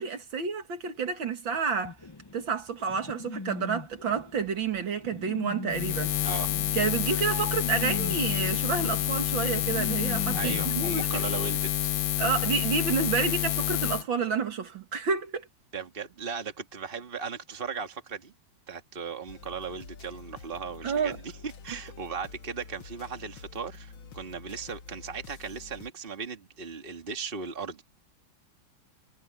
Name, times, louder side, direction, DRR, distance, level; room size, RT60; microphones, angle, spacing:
voice 1, 0.0-2.0 2.3-6.1 6.7-11.2 12.2-15.5 20.8-21.2, right 5 dB, 70° right, 2.7 m, -29 dB
sound 1, 1.8-10.9, left 3 dB, 35° left, 0.4 m, -40 dB
Buzz, 5.7-14.0, left 13 dB, 65° left, 1.3 m, -28 dB
voice 2, 6.2-6.5 10.0-11.9 15.7-18.3 18.7-27.8, right 5 dB, 25° right, 2.1 m, -37 dB
sound 2, 19.3-25.9, left 5 dB, 85° left, 2.5 m, -48 dB
omnidirectional pair, 2.2 m